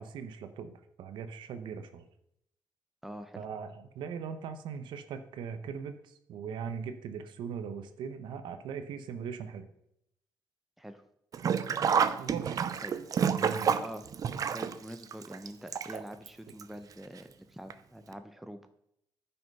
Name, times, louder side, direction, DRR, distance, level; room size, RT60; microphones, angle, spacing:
voice 1, 0.0-2.1 3.3-9.7 12.2-12.6 13.2-13.7, right 6 dB, 85° right, 9 dB, 0.8 m, -40 dB
voice 2, 3.0-3.4 10.8-11.0 12.8-12.9 13.8-14.1 14.5-18.7, right 1 dB, ahead, 8 dB, 0.7 m, -45 dB
Sink (filling or washing), 11.3-16.3 16.6-16.7 17.7-17.8 18.1-18.2, right 7 dB, 50° right, 0.6 m, -29 dB
9.3 x 5.8 x 5.4 m, 0.75 s
cardioid pair, 115°, 8 cm